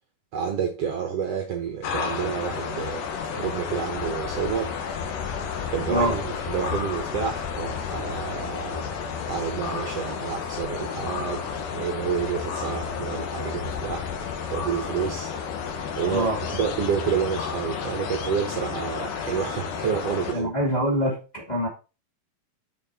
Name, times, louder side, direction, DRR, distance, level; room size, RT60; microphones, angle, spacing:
voice 1, 0.3-3.1 3.3-8.8 9.3-11.5 11.7-14.1 14.5-15.4 15.7-20.5, right 7 dB, 65° right, 1.7 m, -29 dB
sound 1, 1.8-20.3, left 6 dB, 85° left, 2.8 m, -31 dB
voice 2, 20.3-21.7, equal, 15° left, 2.0 m, -24 dB
6.9 x 6.5 x 4.1 m
omnidirectional pair, 3.7 m